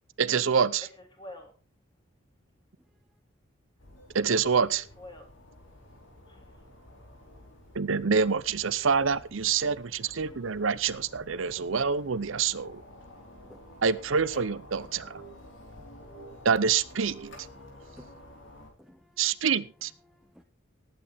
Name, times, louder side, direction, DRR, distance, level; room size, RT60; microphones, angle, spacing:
voice 1, 0.2-0.8 4.1-4.8 7.7-12.8 13.8-15.2 16.4-17.3 19.2-19.9, right 6 dB, 80° right, 0.7 m, -26 dB
voice 2, 0.8-1.5 4.6-5.3 6.3-6.6 8.8-9.2, left 1 dB, 25° left, 3.4 m, -48 dB
sound 1, 3.8-18.7, equal, 65° left, 4.3 m, -50 dB
voice 3, 17.6-18.5 18.8-19.2 20.1-20.4, equal, ahead, 1.0 m, -56 dB
19.0 x 9.1 x 3.5 m
head